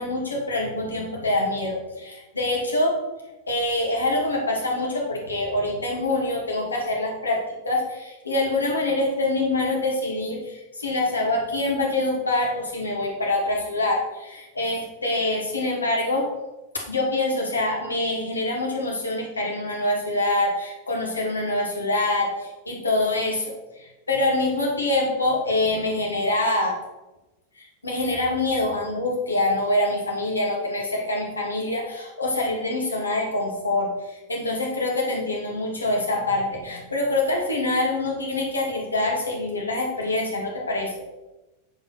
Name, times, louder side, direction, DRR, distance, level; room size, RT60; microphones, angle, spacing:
voice 1, 0.0-2.9 3.5-16.3 16.9-23.5 23.8-26.8 27.6-40.9, left 2 dB, 80° left, -1 dB, 2.5 m, -25 dB
9.2 x 5.4 x 5.9 m, 1.0 s
figure-of-eight pair, 90°, 0 cm